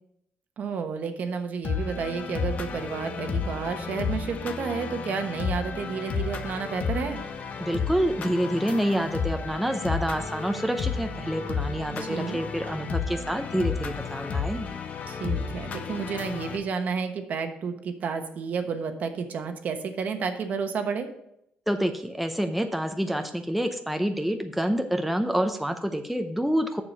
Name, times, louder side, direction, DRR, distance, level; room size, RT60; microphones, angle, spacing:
voice 1, 0.6-7.2 12.0-12.4 15.1-21.1, right 5 dB, 55° right, 7 dB, 1.1 m, -31 dB
sound 1, 1.6-16.6, left 5 dB, 50° left, 0.9 m, -32 dB
voice 2, 7.6-14.7 21.7-26.8, equal, ahead, 5 dB, 0.6 m, -27 dB
7.3 x 6.7 x 5.4 m, 0.79 s
cardioid pair, 120°, 3 cm